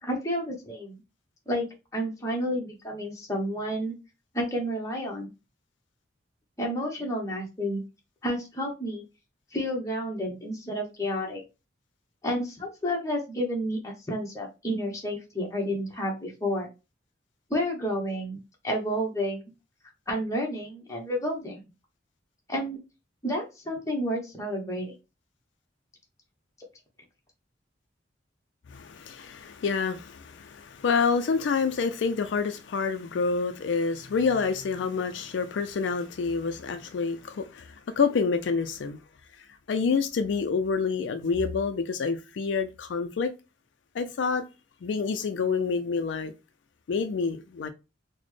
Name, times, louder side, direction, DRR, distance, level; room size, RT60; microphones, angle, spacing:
voice 1, 0.0-1.0 1.5-1.7 1.9-3.9 4.3-5.3 6.6-7.8 8.2-9.0 9.5-11.4 12.2-16.7 17.5-19.5 20.1-21.6 22.5-22.8 23.2-24.9, equal, 15° left, 0.9 m, -30 dB
voice 2, 28.7-39.0 39.4-43.3 43.9-44.5 44.8-46.3 46.9-47.7, left 5 dB, 70° left, 0.4 m, -28 dB
4.0 x 2.1 x 3.1 m
head